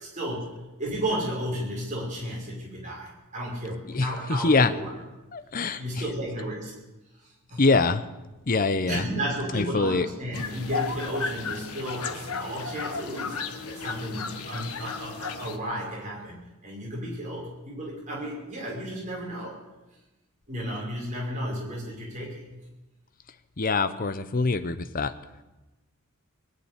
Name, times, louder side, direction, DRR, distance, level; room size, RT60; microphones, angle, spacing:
voice 1, 0.0-5.0 5.7-6.7 7.5-7.7 8.9-13.3 13.7-19.6 20.5-22.4, right 1 dB, 35° right, -4 dB, 5.5 m, -33 dB
voice 2, 3.9-4.7 5.3-5.8 7.6-8.0 8.5-9.0 9.5-10.1 23.6-25.1, left 3 dB, 40° left, 11 dB, 0.7 m, -24 dB
sound 1, 10.3-15.6, left 5 dB, 80° left, 1.3 m, -34 dB
20.5 x 6.9 x 9.9 m, 1.1 s
head